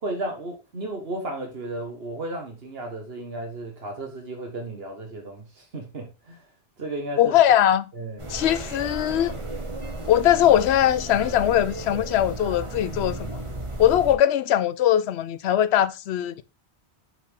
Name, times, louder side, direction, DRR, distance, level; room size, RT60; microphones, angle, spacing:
voice 1, 0.0-6.4 6.8-7.4 7.9-8.2, right 2 dB, 70° right, 1.7 m, -34 dB
voice 2, 7.2-7.8 8.3-9.3 10.1-13.4 13.8-16.4, left 11 dB, 85° left, 0.8 m, -20 dB
sound 1, 8.2-14.1, right 2 dB, 30° right, 1.2 m, -34 dB
5.9 x 5.5 x 3.6 m
omnidirectional pair, 1.1 m